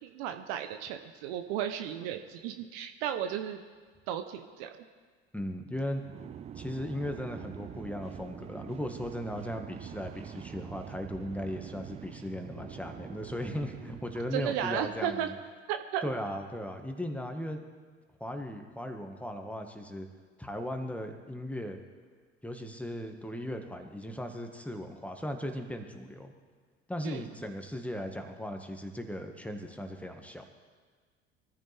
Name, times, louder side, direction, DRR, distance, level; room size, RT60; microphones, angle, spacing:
voice 1, 0.0-3.6 4.1-4.7 14.3-15.3 15.7-16.1 27.0-27.2, right 10 dB, 60° right, 8 dB, 1.0 m, -34 dB
voice 2, 5.3-6.0 6.5-15.3 16.0-17.6 18.2-20.1 20.4-21.8 22.4-26.3 26.9-30.4, equal, 5° left, 4 dB, 1.8 m, -37 dB
sound 1, 6.0-15.0, right 9 dB, 20° right, 0.3 m, -45 dB
23.5 x 14.5 x 3.6 m, 1.5 s
figure-of-eight pair, 65°, 34 cm